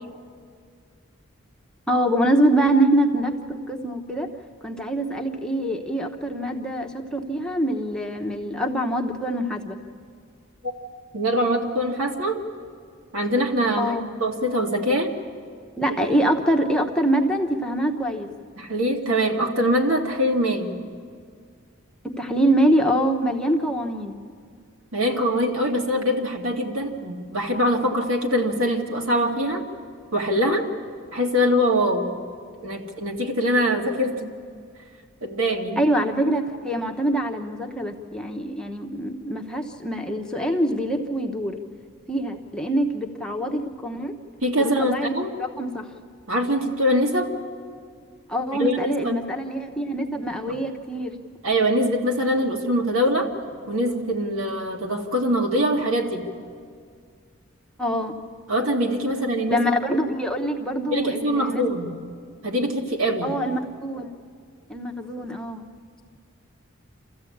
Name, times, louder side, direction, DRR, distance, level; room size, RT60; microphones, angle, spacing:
voice 1, 1.9-4.3 4.6-9.8 13.8-14.0 15.8-18.3 22.2-24.2 35.8-41.6 42.1-44.1 44.6-45.1 45.4-45.9 48.3-51.2 57.8-58.1 59.5-61.7 63.2-64.1 64.7-65.6, right 1 dB, 5° left, 2 dB, 1.0 m, -24 dB
voice 2, 11.1-12.4 13.1-13.9 14.2-15.1 18.6-20.7 24.9-29.6 30.1-30.7 31.1-32.1 32.6-34.3 35.2-35.8 44.4-45.3 46.3-47.3 48.6-49.2 51.4-53.3 53.7-56.2 58.5-59.6 60.9-61.9 62.4-63.4, equal, 80° right, 2 dB, 2.2 m, -23 dB
27.5 x 14.5 x 8.6 m, 2.1 s
head